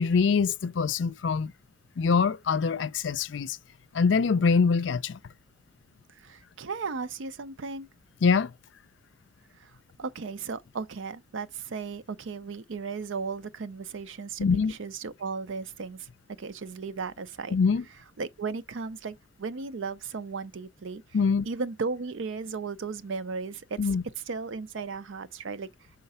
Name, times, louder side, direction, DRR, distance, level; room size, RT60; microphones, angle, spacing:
voice 1, 0.0-1.5 2.0-3.6 3.9-5.2 8.2-8.5 14.4-14.7 17.5-17.8 21.1-21.5 23.8-24.0, left 5 dB, 70° left, 0.4 m, -24 dB
voice 2, 6.1-7.9 9.6-16.1 16.4-17.6 18.2-21.0 21.4-23.8 24.3-25.7, right 4 dB, 80° right, 0.6 m, -35 dB
5.7 x 3.8 x 5.4 m
head